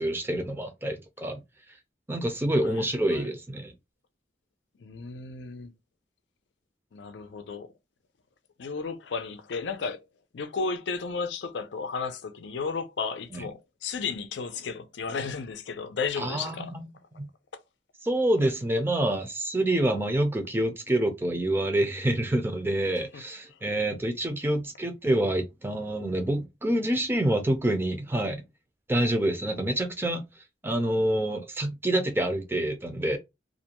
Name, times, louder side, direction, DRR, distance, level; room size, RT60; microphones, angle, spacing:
voice 1, 0.0-1.4 2.1-3.7 13.3-13.4 16.2-16.9 17.1-17.3 18.0-28.4 28.9-30.2 30.6-33.2, right 1 dB, 15° right, 0.5 m, -27 dB
voice 2, 2.6-3.3 4.8-5.7 6.9-7.7 8.6-10.0 10.3-16.8 23.1-23.2 23.5-23.6, left 5 dB, 85° left, 0.5 m, -34 dB
2.5 x 2.2 x 2.8 m
head